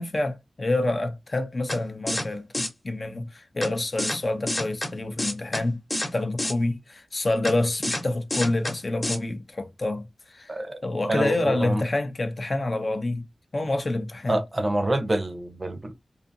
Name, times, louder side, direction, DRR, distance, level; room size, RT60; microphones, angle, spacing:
voice 1, 0.0-5.8 6.1-10.5 10.8-13.2 13.5-14.4, left 2 dB, 40° left, 0.5 m, -27 dB
sound 1, 1.7-1.8 2.1-2.3 2.5-2.7 3.6-3.7 4.0-4.2 4.5-4.9 5.2-5.6 5.9-6.1 6.4-6.5 7.5-7.6 7.8-8.0 8.3-8.7 9.0-9.2, left 1 dB, 20° left, 0.9 m, -27 dB
voice 2, 10.5-10.8 11.1-11.8 14.3-15.9, right 1 dB, 30° right, 0.5 m, -26 dB
2.5 x 2.4 x 2.5 m
wide cardioid pair, 90°, 0 cm